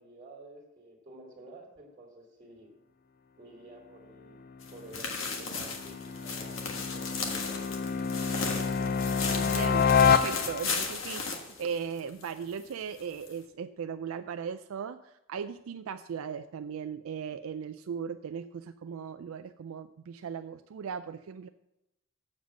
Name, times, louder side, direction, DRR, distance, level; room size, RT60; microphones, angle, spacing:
voice 1, 0.0-2.7 3.4-4.4 4.7-8.2, right 2 dB, 30° right, -5 dB, 2.1 m, -51 dB
sound 1, 4.5-10.9, left 6 dB, 45° left, 0.4 m, -28 dB
sound 2, 4.6-12.3 12.6-12.7 13.2-13.3, left 4 dB, 65° left, 1.5 m, -36 dB
voice 2, 9.3-21.5, right 7 dB, 85° right, 9 dB, 0.4 m, -38 dB
7.5 x 7.4 x 6.0 m, 0.89 s
head